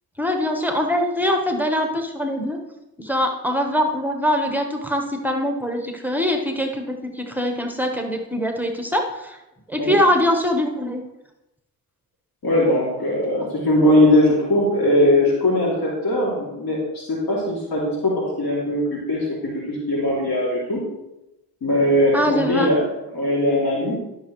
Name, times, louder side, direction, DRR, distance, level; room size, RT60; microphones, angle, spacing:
voice 1, 0.2-2.6 3.0-9.4 9.7-11.0 22.1-22.7, equal, 5° right, 3 dB, 1.1 m, -23 dB
voice 2, 12.4-20.8 21.6-22.9 23.1-24.0, left 1 dB, 65° left, -4 dB, 2.8 m, -20 dB
12.0 x 6.2 x 3.1 m, 0.95 s
cardioid pair, 75°, 39 cm